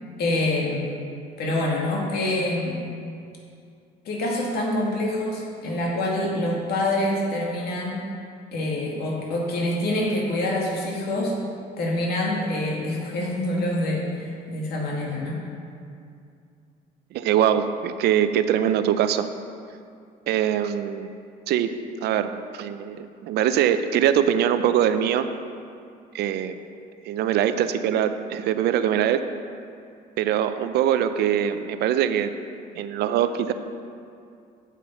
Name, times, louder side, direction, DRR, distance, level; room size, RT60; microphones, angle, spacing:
voice 1, 0.2-1.0 1.4-2.8 4.0-8.0 8.5-11.3 11.8-15.4, left 1 dB, 70° left, -2 dB, 2.2 m, -26 dB
voice 2, 17.1-19.3 20.3-21.1 21.5-21.7 22.0-25.3 26.1-26.5 27.1-29.2 30.2-32.3 32.8-33.5, right 10 dB, 75° right, 10 dB, 0.5 m, -22 dB
8.3 x 7.3 x 5.5 m, 2.4 s
cardioid pair, 110°, 17 cm